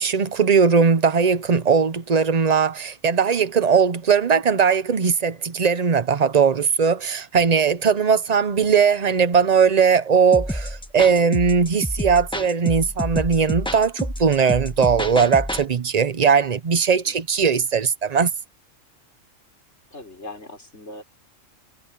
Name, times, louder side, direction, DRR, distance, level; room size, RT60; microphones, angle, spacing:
voice 1, 0.0-18.3, right 6 dB, 40° right, 0.7 m, -19 dB
sound 1, 10.3-15.7, equal, 5° left, 1.4 m, -29 dB
voice 2, 19.9-21.0, left 2 dB, 55° left, 6.2 m, -40 dB
omnidirectional pair, 1.4 m